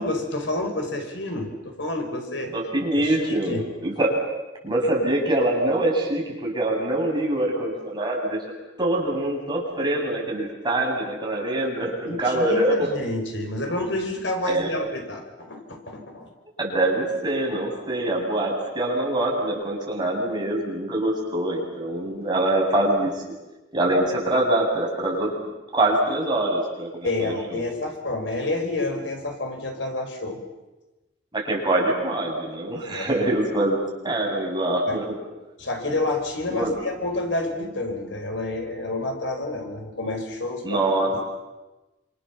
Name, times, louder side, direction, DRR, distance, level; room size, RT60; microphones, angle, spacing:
voice 1, 0.0-2.6 3.0-3.6 12.0-16.3 27.0-30.4 32.7-33.1 34.9-35.0 35.6-40.8, left 2 dB, 75° left, 4 dB, 5.4 m, -29 dB
voice 2, 2.5-4.2 4.6-8.4 8.8-13.1 14.5-14.7 16.6-23.1 23.7-25.3 25.7-27.6 31.3-35.1 35.9-36.0 36.5-36.7 40.6-41.3, right 1 dB, 25° right, -1 dB, 8.0 m, -24 dB
29.0 x 27.0 x 7.3 m, 1.1 s
head